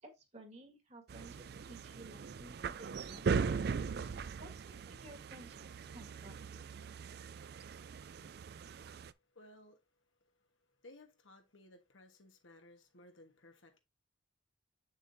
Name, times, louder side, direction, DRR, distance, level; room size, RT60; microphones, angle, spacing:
voice 1, 0.0-3.6 4.4-6.7, right 1 dB, 35° right, 1.7 m, -55 dB
sound 1, 1.1-9.1, right 5 dB, 50° right, 0.4 m, -39 dB
voice 2, 7.7-13.8, left 1 dB, 80° left, 1.4 m, -61 dB
7.2 x 7.1 x 2.7 m
head